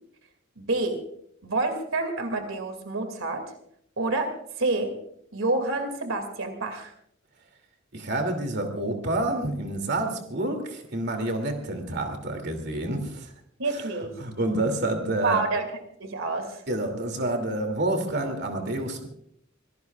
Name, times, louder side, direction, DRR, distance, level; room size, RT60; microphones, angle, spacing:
voice 1, 0.6-1.0 1.4-3.4 4.0-4.9 5.3-6.9 13.6-14.1 15.2-15.7 16.0-16.6, right 3 dB, 85° right, 6 dB, 2.4 m, -28 dB
voice 2, 7.9-13.3 14.2-15.4 16.7-19.1, right 1 dB, 55° right, 5 dB, 2.7 m, -28 dB
26.0 x 18.0 x 2.4 m, 0.70 s
head